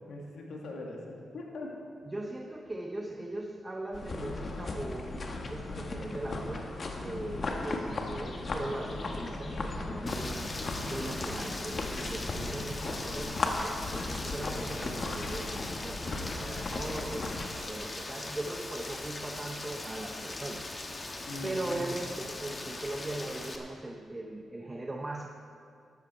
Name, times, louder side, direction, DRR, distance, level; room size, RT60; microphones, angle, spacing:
voice 1, 0.1-1.7 21.3-21.8, left 2 dB, 75° left, -1 dB, 2.2 m, -41 dB
voice 2, 2.0-10.5 10.9-17.3 17.7-20.8 21.1-25.3, right 1 dB, 25° right, 3 dB, 0.8 m, -39 dB
sound 1, 3.9-17.5, left 2 dB, 50° left, 1.5 m, -36 dB
Rain, 10.1-23.6, left 2 dB, 35° left, 1.5 m, -40 dB
13.0 x 11.0 x 4.5 m, 2.5 s
supercardioid pair, 55°, 0 cm